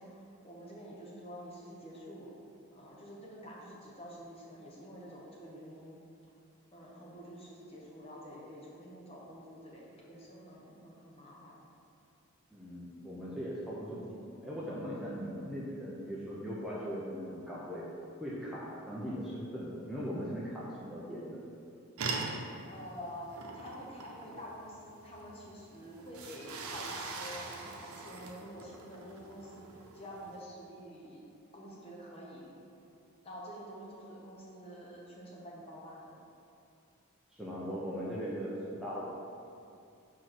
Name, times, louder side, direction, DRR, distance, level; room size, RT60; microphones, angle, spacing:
voice 1, 0.0-2.3 2.7-6.0 6.7-11.6 22.6-31.2 31.5-32.6 33.2-36.1, equal, 25° left, -4 dB, 1.0 m, -48 dB
voice 2, 12.5-14.0 14.4-17.8 18.2-21.4 37.3-39.1, equal, ahead, -8 dB, 0.6 m, -39 dB
sound 1, 22.0-30.4, right 3 dB, 85° right, 0.8 m, -42 dB
4.7 x 4.6 x 5.9 m, 2.6 s
head